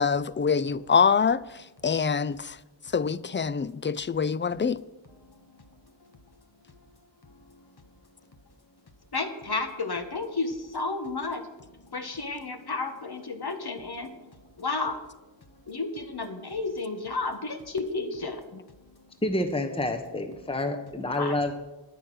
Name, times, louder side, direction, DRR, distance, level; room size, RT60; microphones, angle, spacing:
voice 1, 0.0-2.6 2.9-4.8 18.5-18.6, left 6 dB, 25° left, 0.4 m, -25 dB
voice 2, 9.1-11.4 11.9-14.1 14.6-15.0 15.7-18.4 21.1-21.4, left 3 dB, 55° left, 1.5 m, -32 dB
voice 3, 19.2-21.5, left 1 dB, 10° left, 1.0 m, -28 dB
9.9 x 9.2 x 6.3 m
wide cardioid pair, 55°, 45 cm